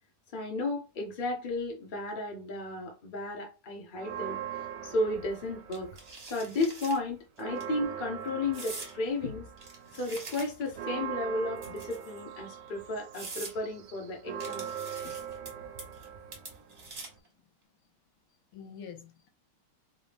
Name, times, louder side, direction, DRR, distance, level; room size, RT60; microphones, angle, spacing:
voice 1, 0.3-4.4 4.8-5.9 6.3-9.5 9.9-14.7 15.0-15.1, left 2 dB, 35° left, 0.8 m, -33 dB
Church bell, 4.0-6.3 6.7-6.8 7.1-17.2, right 9 dB, 65° right, 1.2 m, -41 dB
sound 1, 5.7-7.0 7.4-7.6 8.5-8.9 9.6-10.7 11.6-12.2 12.7-12.8 13.1-13.5 14.4-15.5 15.8-16.1 16.3-17.3, right 3 dB, 40° right, 1.0 m, -44 dB
voice 2, 15.0-16.4 18.5-19.3, left 7 dB, 80° left, 1.7 m, -50 dB
4.1 x 2.6 x 3.5 m
omnidirectional pair, 2.4 m